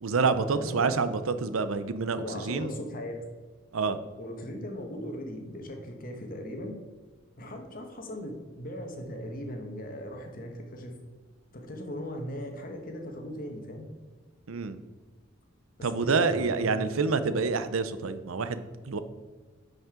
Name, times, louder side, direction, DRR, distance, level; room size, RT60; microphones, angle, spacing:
voice 1, 0.0-2.7 3.7-4.0 14.5-14.8 15.8-19.0, right 4 dB, 80° right, 12 dB, 0.6 m, -27 dB
voice 2, 0.5-0.9 2.2-3.2 4.2-6.7 7.4-10.9 11.5-13.8 15.9-16.9, equal, 40° left, 3 dB, 1.3 m, -38 dB
10.5 x 5.4 x 3.8 m, 1.4 s
head